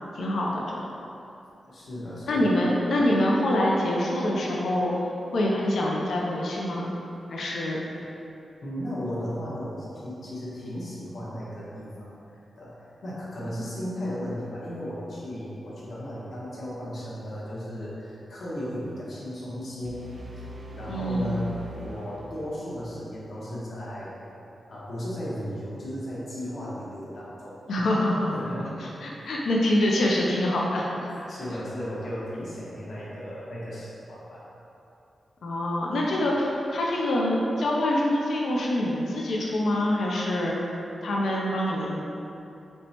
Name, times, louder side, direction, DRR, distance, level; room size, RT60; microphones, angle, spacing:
voice 1, 0.1-0.8 2.3-4.9 5.3-6.9 7.3-7.8 20.9-21.4 27.7-28.3 28.8-30.8 35.4-40.6 41.0-42.0, left 1 dB, 75° left, -3 dB, 0.4 m, -25 dB
voice 2, 1.7-2.5 8.6-20.0 20.8-24.2 24.7-27.6 28.3-28.8 29.1-29.3 31.1-34.4, equal, 55° left, -8 dB, 0.9 m, -35 dB
sound 1, 19.8-22.9, equal, 45° right, 0.3 m, -42 dB
4.3 x 2.1 x 2.7 m, 2.8 s
wide cardioid pair, 125°, 0 cm